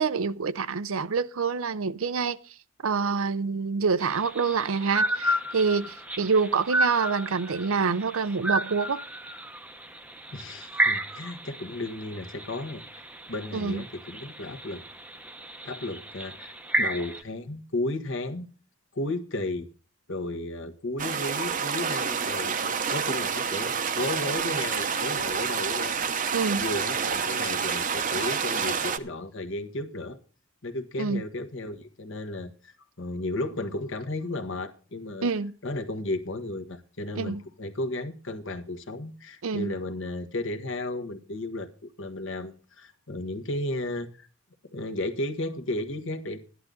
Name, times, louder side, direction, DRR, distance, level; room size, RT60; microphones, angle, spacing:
voice 1, 0.0-2.4 2.8-9.0 13.5-13.8 26.3-26.7 31.0-31.2 35.2-35.5 37.1-37.4 39.4-39.8, right 5 dB, 75° right, 0.6 m, -26 dB
sound 1, 4.0-17.2, right 1 dB, 5° right, 0.7 m, -32 dB
voice 2, 10.3-12.8 13.3-14.8 15.6-18.5 18.9-19.7 20.1-26.0 26.6-30.2 30.6-35.3 35.6-44.3 44.7-46.4, left 2 dB, 60° left, 1.4 m, -34 dB
sound 2, 21.0-29.0, right 6 dB, 40° right, 0.7 m, -28 dB
13.5 x 11.0 x 3.8 m
head